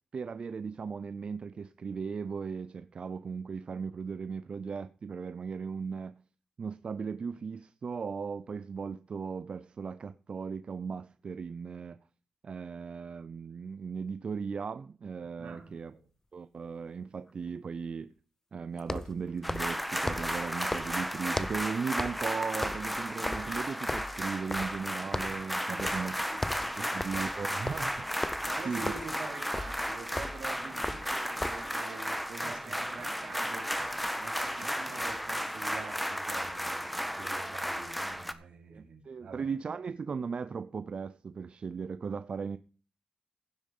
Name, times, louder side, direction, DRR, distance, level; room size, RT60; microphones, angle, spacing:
voice 1, 0.1-6.1 6.6-12.0 12.4-15.9 16.3-18.1 18.5-26.2 26.8-28.2 28.6-28.9 32.4-32.7 38.7-42.6, right 5 dB, 55° right, 0.5 m, -37 dB
voice 2, 15.4-16.0 25.7-27.2 28.4-33.7 34.1-39.5, right 5 dB, 80° right, 4.1 m, -46 dB
sound 1, 15.5-15.6 18.8-21.7 22.0-22.3 22.6-24.9 25.1-25.4 25.8-26.1 26.3-31.7, left 2 dB, 20° left, 0.8 m, -38 dB
sound 2, 19.4-38.3, equal, ahead, 1.5 m, -34 dB
16.0 x 7.4 x 5.4 m
cardioid pair, 70°, 2 cm